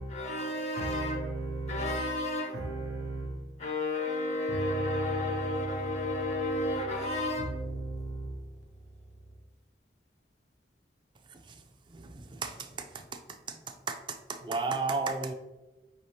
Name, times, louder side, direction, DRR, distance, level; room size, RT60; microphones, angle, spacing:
voice 1, 0.1-2.8 3.6-7.6, left 1 dB, 40° left, 0.5 m, -32 dB
voice 2, 0.8-2.0 2.5-3.7 4.5-5.7 6.1-6.4 7.4-9.4, right 2 dB, 80° right, 0.9 m, -37 dB
voice 3, 11.3-15.3, right 4 dB, 25° right, 0.3 m, -35 dB
5.3 x 2.8 x 3.1 m
head